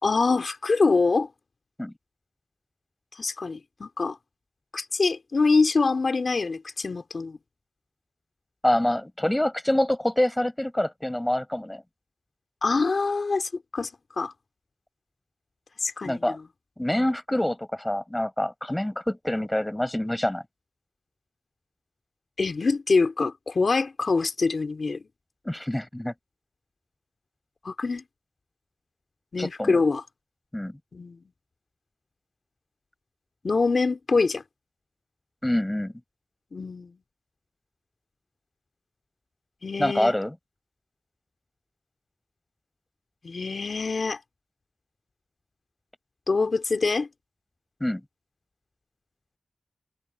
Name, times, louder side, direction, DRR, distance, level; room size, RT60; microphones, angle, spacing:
voice 1, 0.0-1.3 3.1-4.2 4.7-7.4 12.6-13.9 14.2-14.3 15.8-16.2 22.4-25.0 27.6-28.0 29.3-30.0 30.9-31.2 33.4-34.4 36.5-37.0 39.6-40.1 43.2-44.2 46.3-47.1, left 4 dB, 55° left, 4.0 m, -24 dB
voice 2, 8.6-11.8 16.0-16.4 16.8-20.4 25.4-26.1 29.4-29.8 30.5-30.8 35.4-35.9 39.8-40.3 47.8-48.0, left 1 dB, 10° left, 5.7 m, -26 dB
wide cardioid pair, 90°, 0 cm